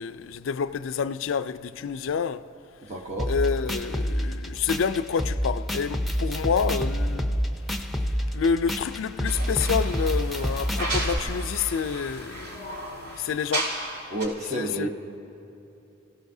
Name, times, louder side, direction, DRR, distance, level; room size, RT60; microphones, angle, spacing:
voice 1, 0.0-2.5 3.3-7.4 8.3-13.7 14.5-14.9, left 6 dB, 70° left, 0.4 m, -28 dB
voice 2, 2.9-3.3 14.1-14.9, right 1 dB, 35° right, 0.9 m, -30 dB
sound 1, 3.2-11.2, equal, ahead, 0.7 m, -28 dB
sound 2, 9.3-14.0 14.2-14.3, right 1 dB, 70° right, 4.8 m, -34 dB
30.0 x 16.5 x 2.7 m
head